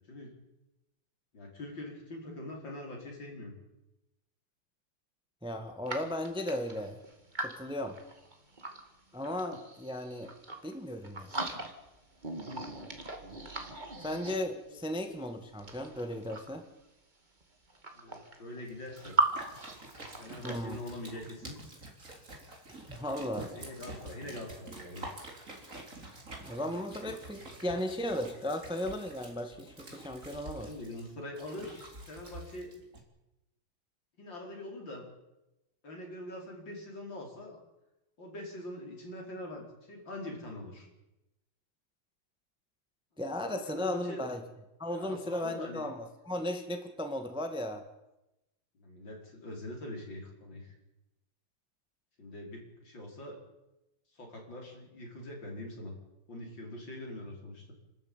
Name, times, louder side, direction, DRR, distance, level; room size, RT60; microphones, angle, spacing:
voice 1, 1.3-3.5 14.7-14.8 17.9-19.2 20.2-21.6 23.5-25.1 27.3-27.4 30.6-32.7 34.2-35.1 35.8-37.6 38.2-40.9 43.4-44.2 44.9-45.9 48.8-50.7 52.2-53.4 54.1-55.9 56.3-57.7, left 1 dB, 65° left, 0 dB, 5.6 m, -43 dB
voice 2, 5.4-7.0 7.4-8.0 9.1-10.3 10.6-11.5 14.0-16.6 20.4-20.8 22.7-23.5 26.4-30.7 43.2-44.4 44.8-47.8, left 1 dB, 5° right, 6 dB, 1.5 m, -36 dB
sound 1, 5.9-8.8 9.2-10.7 11.0-12.0 12.2-14.8 15.5-16.7 17.4-17.5 17.7-19.3 19.5-20.5, right 2 dB, 20° right, 2.4 m, -37 dB
sound 2, 18.7-33.0, right 2 dB, 35° right, 4.1 m, -48 dB
28.0 x 13.0 x 9.0 m, 0.96 s
omnidirectional pair, 2.3 m